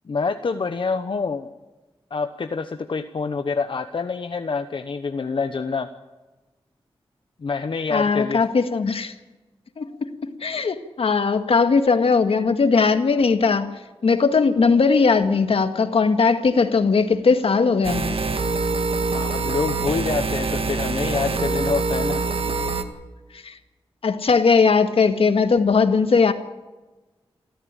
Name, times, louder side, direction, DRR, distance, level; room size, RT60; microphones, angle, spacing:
voice 1, 0.1-1.5 2.1-5.9 7.4-8.4 19.1-22.2, left 4 dB, 60° left, 1.0 m, -26 dB
voice 2, 7.9-9.1 9.8-18.2 23.3-23.5 24.0-26.3, left 4 dB, 75° left, 1.8 m, -19 dB
sound 1, 17.8-22.8, right 3 dB, 70° right, 1.9 m, -24 dB
28.0 x 14.0 x 9.0 m
wide cardioid pair, 120°, 10 cm